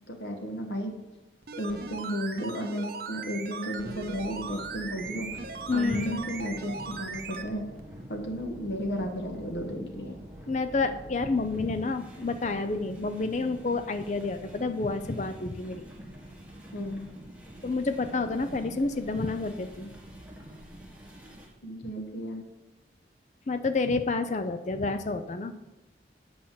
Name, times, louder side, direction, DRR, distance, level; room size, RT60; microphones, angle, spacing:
voice 1, 0.1-0.9 1.6-5.4 5.7-7.6 8.1-10.1 16.7-17.0 21.6-22.4, equal, 75° left, 3 dB, 1.6 m, -33 dB
sound 1, 1.4-7.5 7.8-7.9, right 4 dB, 55° right, 0.8 m, -39 dB
sound 2, 3.8-21.5, equal, 5° right, 1.6 m, -46 dB
voice 2, 5.7-6.2 10.5-15.9 17.6-19.9 23.5-25.5, left 3 dB, 40° left, 10 dB, 0.5 m, -29 dB
8.7 x 5.5 x 7.6 m, 1.0 s
head